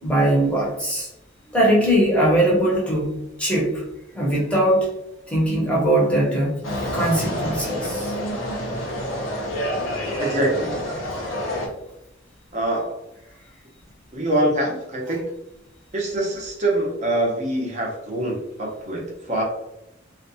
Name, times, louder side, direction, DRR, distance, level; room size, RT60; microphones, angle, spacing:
voice 1, 0.0-1.1 1.5-3.8 4.1-4.9 5.3-6.6 6.9-8.1, right 1 dB, 5° left, -5 dB, 0.8 m, -20 dB
sound 1, 6.6-11.7, equal, 85° left, 0.7 m, -28 dB
voice 2, 10.2-10.8 12.5-13.0 14.1-15.2 15.9-19.4, right 1 dB, 35° right, -2 dB, 0.7 m, -24 dB
2.5 x 2.3 x 2.6 m, 0.90 s
head